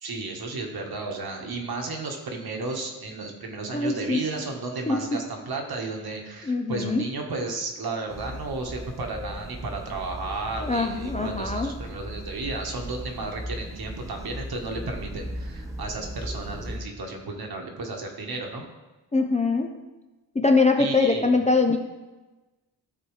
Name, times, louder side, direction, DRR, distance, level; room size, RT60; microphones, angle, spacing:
voice 1, 0.0-18.6 20.8-21.3, right 3 dB, 60° right, 2 dB, 1.3 m, -33 dB
voice 2, 3.7-4.2 4.9-5.2 6.4-7.1 10.6-11.8 19.1-19.7 20.4-21.8, left 3 dB, 20° left, 3 dB, 0.4 m, -23 dB
sound 1, 8.1-16.8, equal, 10° right, 0.7 m, -37 dB
13.5 x 4.6 x 3.2 m, 1.1 s
wide cardioid pair, 170°, 41 cm